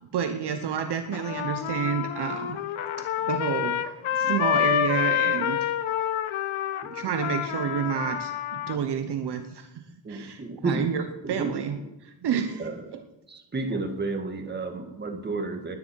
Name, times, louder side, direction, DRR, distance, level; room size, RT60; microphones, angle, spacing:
voice 1, 0.1-2.6 3.2-3.9 4.1-5.7 6.8-9.8 10.1-13.0, right 7 dB, 55° right, 8 dB, 1.0 m, -30 dB
Trumpet, 1.1-8.8, left 11 dB, 80° left, 1.0 m, -28 dB
voice 2, 10.0-10.9 11.2-11.7 12.6-12.8 13.3-15.7, right 3 dB, 20° right, 4 dB, 1.7 m, -31 dB
20.5 x 9.7 x 4.7 m, 0.97 s
wide cardioid pair, 165°, 48 cm